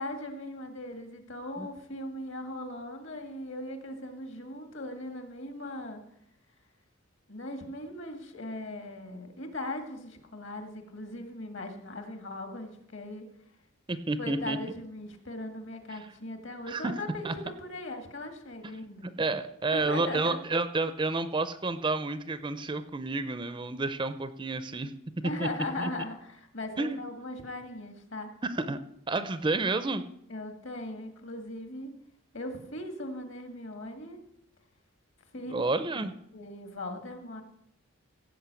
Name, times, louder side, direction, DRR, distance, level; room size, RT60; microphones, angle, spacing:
voice 1, 0.0-6.0 7.3-13.3 14.2-19.1 19.7-20.4 25.2-28.3 30.3-31.9 32.3-34.2 35.3-35.5 36.3-37.4, left 1 dB, 55° left, 5 dB, 2.0 m, -39 dB
voice 2, 13.9-14.8 15.9-16.0 16.7-17.0 17.2-17.3 19.0-24.9 25.2-25.5 25.8-25.9 26.8-27.0 28.4-28.8 29.1-30.0 35.5-36.1, right 3 dB, 20° right, 12 dB, 0.5 m, -30 dB
16.0 x 5.4 x 8.2 m, 0.76 s
head